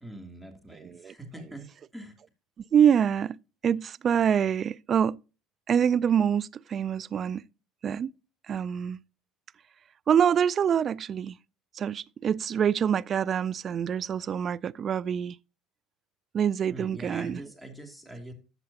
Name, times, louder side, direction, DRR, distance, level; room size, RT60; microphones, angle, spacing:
voice 1, 0.0-1.7 1.9-2.1 16.7-18.3, right 1 dB, 5° right, 2.8 m, -43 dB
voice 2, 0.7-1.6 2.7-5.2 5.7-7.4 7.8-8.1 8.5-9.0 10.1-11.4 11.7-15.4 16.3-17.5, right 8 dB, 40° right, 0.4 m, -26 dB
14.0 x 7.8 x 2.8 m
supercardioid pair, 95°, 0 cm